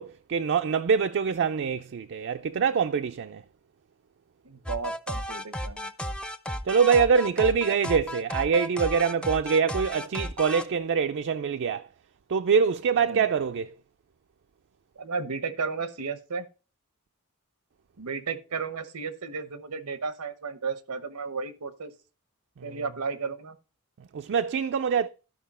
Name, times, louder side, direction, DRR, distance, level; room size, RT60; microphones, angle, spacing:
voice 1, 0.0-3.4 6.6-11.9 12.3-13.7 22.6-22.8 24.1-25.1, right 6 dB, 55° right, 0.4 m, -24 dB
voice 2, 4.4-5.9 13.0-13.2 15.0-16.5 18.0-21.9 22.6-23.6, right 5 dB, 90° right, 1.0 m, -34 dB
sound 1, 4.7-10.6, equal, 5° left, 0.5 m, -33 dB
12.5 x 5.5 x 4.2 m
head